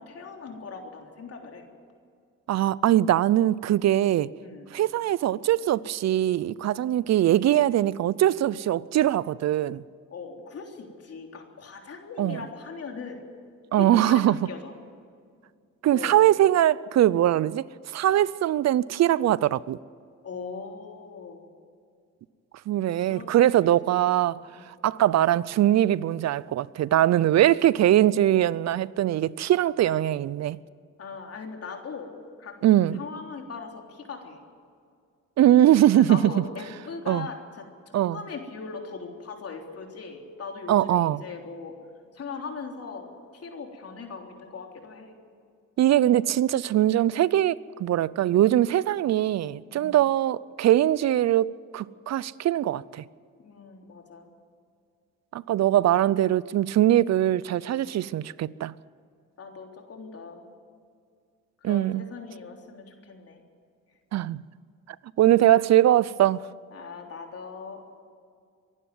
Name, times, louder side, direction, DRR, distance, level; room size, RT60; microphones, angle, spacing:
voice 1, 0.0-1.6 4.4-4.7 6.9-7.1 10.1-13.2 13.8-14.7 15.9-16.3 20.2-21.5 23.1-23.3 23.6-23.7 24.5-24.7 31.0-32.1 32.4-32.6 32.9-34.4 35.9-37.7 38.1-41.7 42.1-43.1 43.3-45.2 49.7-50.0 53.4-54.3 57.7-58.0 59.4-60.4 61.6-63.4 66.7-67.8, left 5 dB, 50° left, 3.6 m, -39 dB
voice 2, 2.5-4.3 4.7-9.8 12.2-12.4 13.7-14.4 15.8-17.6 17.9-19.8 22.7-24.4 24.8-30.6 32.6-33.0 35.4-36.2 37.1-37.3 37.9-38.2 40.7-41.2 45.8-53.0 55.3-58.7 61.6-62.0 64.1-64.4 65.2-66.4, right 13 dB, 60° right, 0.6 m, -22 dB
24.0 x 11.5 x 9.5 m
cardioid pair, 90°, 30 cm